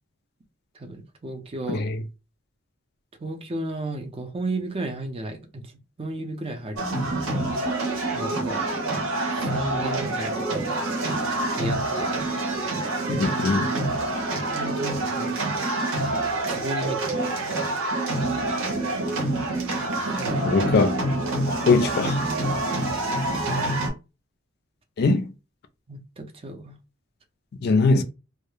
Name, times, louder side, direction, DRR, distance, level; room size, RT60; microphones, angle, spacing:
voice 1, 0.8-1.8 3.2-5.6 6.0-6.8 8.1-9.0 9.4-10.6 11.6-12.3 14.5-15.6 16.5-17.5 20.0-20.5 23.4-23.7 25.9-26.7, right 2 dB, 25° right, 0.5 m, -34 dB
voice 2, 1.7-2.0 13.1-13.7 20.4-21.0 21.5-22.2 25.0-25.3 27.6-28.0, left 3 dB, 50° left, 0.3 m, -21 dB
sound 1, 6.8-23.9, right 2 dB, 75° right, 0.8 m, -26 dB
2.2 x 2.0 x 3.1 m
head